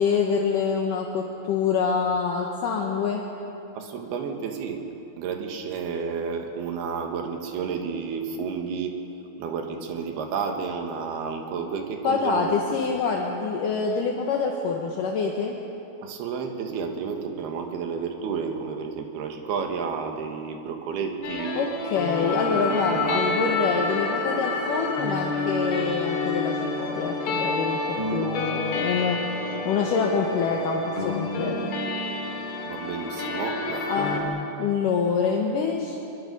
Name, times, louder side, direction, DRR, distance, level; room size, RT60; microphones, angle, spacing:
voice 1, 0.0-3.3 12.0-15.6 21.5-27.8 28.1-29.2 29.7-31.7 33.9-34.2 34.6-36.0, left 5 dB, 65° left, 0 dB, 2.6 m, -26 dB
voice 2, 3.7-4.8 5.2-9.0 9.4-12.7 16.0-21.7 22.2-23.4 32.6-34.3, right 6 dB, 90° right, 4 dB, 3.5 m, -31 dB
sound 1, 21.2-34.2, left 3 dB, 90° left, 4.5 m, -29 dB
23.0 x 22.5 x 5.4 m, 2.9 s
omnidirectional pair, 4.4 m